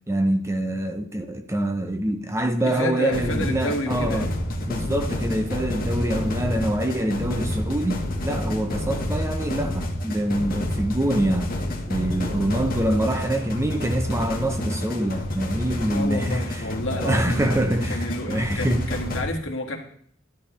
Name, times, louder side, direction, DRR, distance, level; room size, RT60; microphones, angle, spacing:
voice 1, 0.1-4.3 4.7-11.6 11.9-16.6 16.9-18.9, right 1 dB, 15° right, 0.6 m, -25 dB
voice 2, 2.6-4.3 15.9-17.5 17.9-19.8, left 1 dB, 65° left, 1.8 m, -30 dB
sound 1, 3.1-19.2, left 1 dB, 45° left, 1.5 m, -29 dB
12.5 x 11.0 x 3.2 m
head